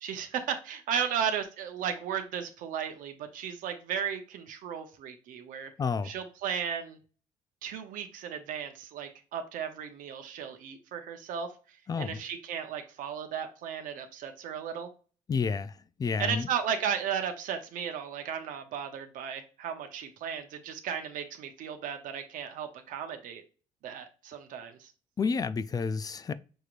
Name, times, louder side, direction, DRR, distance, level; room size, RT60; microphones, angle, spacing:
voice 1, 0.0-5.7 6.0-7.0 7.6-14.9 16.2-23.4 23.8-24.9, right 8 dB, 75° right, 0.8 m, -35 dB
voice 2, 5.8-6.1 11.9-12.2 15.3-16.5 25.2-26.3, left 5 dB, 25° left, 0.4 m, -30 dB
6.5 x 3.0 x 2.5 m
cardioid pair, 100°, 14 cm